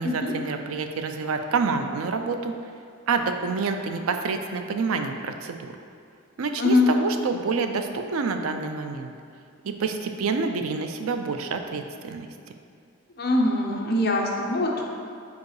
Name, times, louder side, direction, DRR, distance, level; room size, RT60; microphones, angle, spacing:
voice 1, 0.0-2.5 3.1-5.8 6.4-9.1 9.6-12.3, right 4 dB, 85° right, 6 dB, 0.5 m, -27 dB
voice 2, 13.2-14.8, left 2 dB, 50° left, -1 dB, 0.8 m, -23 dB
4.8 x 4.7 x 4.8 m, 2.3 s
head